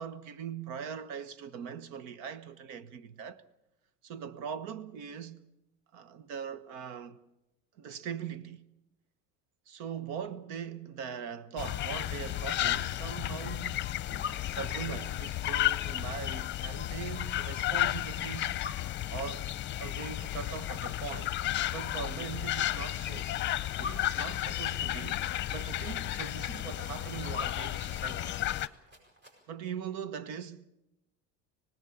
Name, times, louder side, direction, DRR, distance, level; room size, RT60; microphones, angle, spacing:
voice 1, 0.0-3.4 4.0-5.4 5.9-7.2 7.8-8.6 9.7-18.5 19.1-19.5 19.8-21.4 21.7-23.3 23.6-28.3 29.5-30.7, right 7 dB, 80° right, 1.3 m, -41 dB
sound 1, 11.6-28.7, left 14 dB, 35° left, 0.7 m, -33 dB
Rattle (instrument), 24.3-29.5, right 1 dB, 35° right, 7.5 m, -60 dB
25.5 x 18.5 x 7.0 m
cardioid pair, 135°, 32 cm